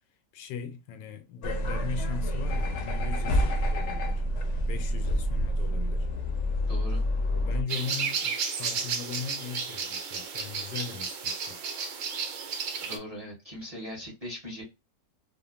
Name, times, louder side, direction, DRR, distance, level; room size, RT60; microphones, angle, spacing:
voice 1, 0.3-4.2 4.7-6.1 7.3-11.6, left 7 dB, 85° left, 1.2 m, -39 dB
sound 1, 1.4-7.6, equal, 65° left, 0.7 m, -28 dB
voice 2, 6.7-7.0 12.8-14.6, equal, 25° right, 0.8 m, -40 dB
sound 2, 7.7-13.0, right 6 dB, 65° right, 0.8 m, -33 dB
2.8 x 2.5 x 2.3 m
omnidirectional pair, 1.8 m